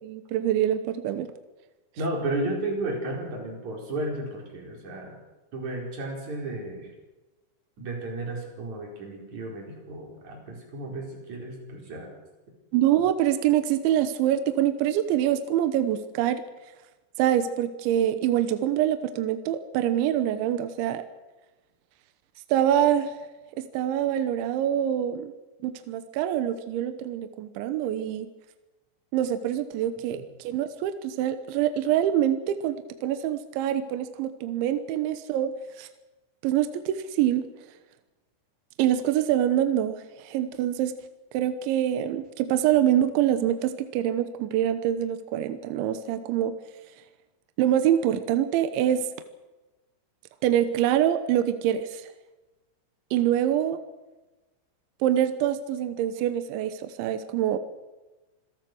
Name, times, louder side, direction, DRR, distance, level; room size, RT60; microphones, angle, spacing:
voice 1, 0.0-1.3 12.7-16.4 17.2-21.0 22.5-23.2 23.6-25.3 25.6-28.3 29.1-35.9 36.4-37.5 38.8-40.9 41.3-46.6 47.6-49.1 50.4-52.0 53.1-53.8 55.0-57.6, right 11 dB, 75° right, 9 dB, 3.1 m, -25 dB
voice 2, 2.0-5.2 5.5-6.9 7.8-12.1 30.1-30.2, right 2 dB, 35° right, 0 dB, 5.7 m, -33 dB
26.5 x 17.5 x 6.3 m, 1.1 s
omnidirectional pair, 5.9 m